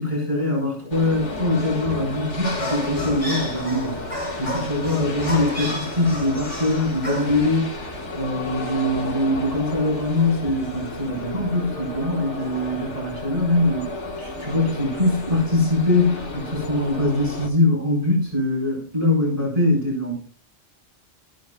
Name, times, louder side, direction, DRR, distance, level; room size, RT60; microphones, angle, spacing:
voice 1, 0.0-4.0 4.4-20.1, left 2 dB, 30° right, -3 dB, 4.8 m, -23 dB
sound 1, 0.9-17.5, left 2 dB, 85° left, 2.2 m, -33 dB
sound 2, 2.4-7.6, equal, 30° left, 6.3 m, -32 dB
14.0 x 11.5 x 2.3 m, 0.40 s
omnidirectional pair, 1.2 m